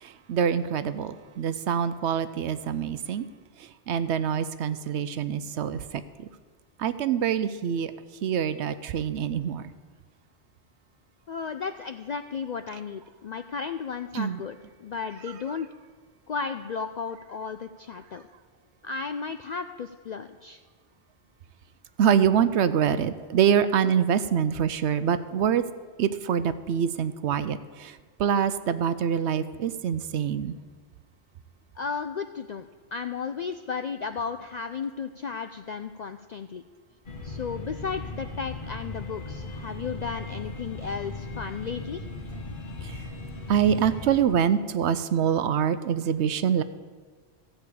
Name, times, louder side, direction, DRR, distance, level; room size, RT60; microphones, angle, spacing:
voice 1, 0.0-3.3 3.9-6.0 6.8-7.9 8.2-9.6 14.1-14.4 22.0-25.6 26.0-30.6 42.8-43.0 43.5-46.6, right 8 dB, 75° right, 13 dB, 0.9 m, -25 dB
voice 2, 11.3-15.7 16.3-18.3 18.8-20.6 31.8-36.6 37.2-42.0, left 5 dB, 65° left, 8 dB, 0.4 m, -34 dB
sound 1, 37.1-44.3, left 2 dB, 45° left, 1.2 m, -38 dB
15.0 x 5.0 x 8.4 m, 1.5 s
omnidirectional pair, 1.2 m